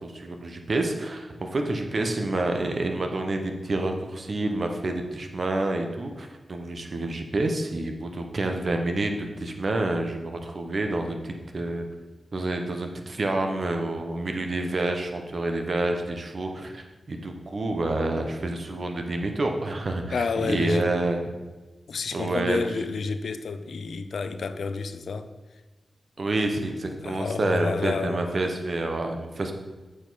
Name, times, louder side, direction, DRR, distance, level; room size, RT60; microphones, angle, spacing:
voice 1, 0.0-11.9 12.3-21.3 22.1-22.6 26.2-29.5, right 2 dB, 60° right, 4 dB, 1.0 m, -28 dB
voice 2, 20.1-20.9 21.9-25.3 27.0-28.3, left 4 dB, 80° left, 10 dB, 0.5 m, -30 dB
8.7 x 5.2 x 4.1 m, 1.2 s
cardioid pair, 45°, 0 cm